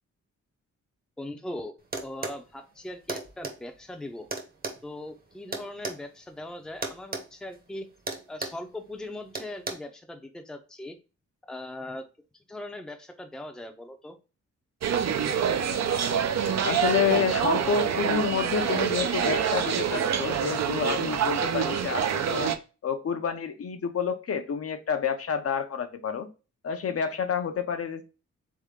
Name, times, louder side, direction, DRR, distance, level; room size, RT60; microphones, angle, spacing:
voice 1, 1.2-1.7 2.0-4.3 4.8-7.9 8.3-11.0 11.5-12.1 12.3-14.2, left 1 dB, ahead, 5 dB, 0.6 m, -40 dB
sound 1, 1.9-2.4 3.1-3.6 4.3-6.0 6.8-7.3 7.5-7.7 8.1-8.6 9.3-9.7, right 3 dB, 30° right, 0.9 m, -34 dB
sound 2, 14.8-22.6, right 8 dB, 65° right, 0.6 m, -26 dB
voice 2, 16.6-22.5 22.8-26.3 26.6-28.0, left 6 dB, 55° left, 7 dB, 0.6 m, -29 dB
3.6 x 3.6 x 3.6 m, 0.32 s
wide cardioid pair, 115°, 29 cm